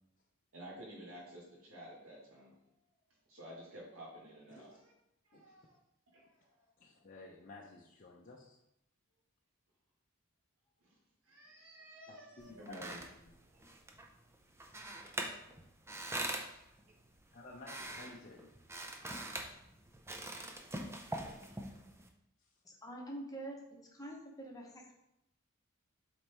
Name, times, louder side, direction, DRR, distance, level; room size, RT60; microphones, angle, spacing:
voice 1, 0.5-2.6 3.3-4.8 5.3-5.8 6.1-6.7 10.8-10.9 11.2-13.0, equal, 70° right, -5 dB, 1.9 m, -52 dB
voice 2, 6.8-8.6 12.1-12.8 13.3-13.4 17.3-18.5 22.4-22.5, left 2 dB, 40° left, -2 dB, 0.6 m, -54 dB
sound 1, 12.4-22.1, right 1 dB, 10° right, 0.5 m, -44 dB
voice 3, 22.6-23.6 23.9-24.9, right 1 dB, 15° left, -1 dB, 1.1 m, -45 dB
7.4 x 4.1 x 3.5 m, 0.82 s
head